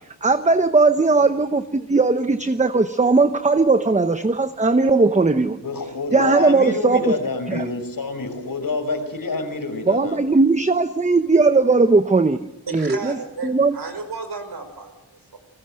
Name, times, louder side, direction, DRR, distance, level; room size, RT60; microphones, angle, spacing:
voice 1, 0.2-5.6 6.1-7.2 7.5-7.7 9.9-13.2 13.4-13.8, right 3 dB, 20° right, 1.0 m, -18 dB
voice 2, 5.6-10.4, left 3 dB, 60° left, 5.4 m, -27 dB
voice 3, 12.7-14.9 15.3-15.4, right 4 dB, 75° right, 5.0 m, -33 dB
30.0 x 19.5 x 7.7 m
wide cardioid pair, 75°, 39 cm